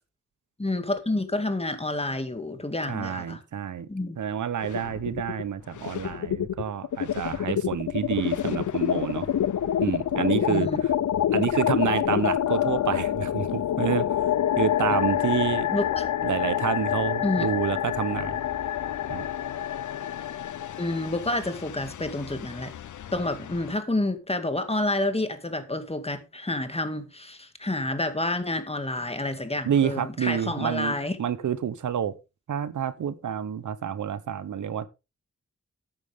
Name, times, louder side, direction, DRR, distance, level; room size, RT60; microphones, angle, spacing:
voice 1, 0.6-3.4 3.9-4.2 10.5-10.8 15.7-16.1 17.2-17.5 20.8-22.7 23.1-31.2, left 2 dB, 20° left, 2.3 m, -29 dB
voice 2, 2.9-3.9 4.2-9.3 9.8-10.9 11.3-15.7 16.2-18.4 19.1-19.3 29.6-32.1 32.5-34.9, right 8 dB, 85° right, 1.0 m, -28 dB
sound 1, 4.6-5.4 5.7-23.8, left 10 dB, 90° left, 0.7 m, -27 dB
13.5 x 9.2 x 3.6 m
cardioid pair, 60°, 29 cm